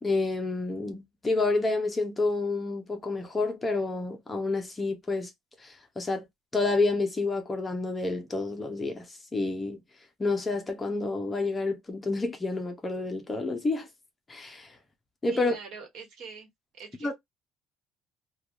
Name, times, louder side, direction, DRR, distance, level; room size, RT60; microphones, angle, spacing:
voice 1, 0.0-5.3 5.6-6.3 6.5-9.8 10.2-13.9 14.3-14.7 15.2-15.6 17.0-17.1, left 3 dB, 15° left, 0.5 m, -29 dB
voice 2, 15.3-16.5 16.7-17.1, right 5 dB, 60° right, 1.2 m, -43 dB
3.2 x 2.2 x 2.3 m
cardioid pair, 175°, 0 cm